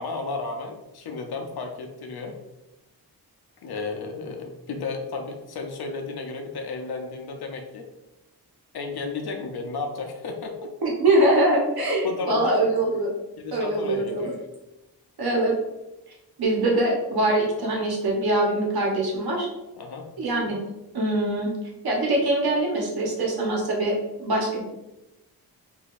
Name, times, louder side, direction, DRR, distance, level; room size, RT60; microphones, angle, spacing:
voice 1, 0.0-2.4 3.6-7.9 8.7-10.7 12.0-12.6 13.4-14.4 19.8-20.1, left 3 dB, 75° left, 4 dB, 0.7 m, -33 dB
voice 2, 10.8-13.1 13.5-14.3 15.2-15.5 16.4-19.5 20.2-20.6 20.9-21.5 21.8-23.9 24.2-24.6, right 1 dB, 70° right, -2 dB, 1.1 m, -23 dB
4.9 x 2.7 x 2.5 m, 0.97 s
wide cardioid pair, 170°, 38 cm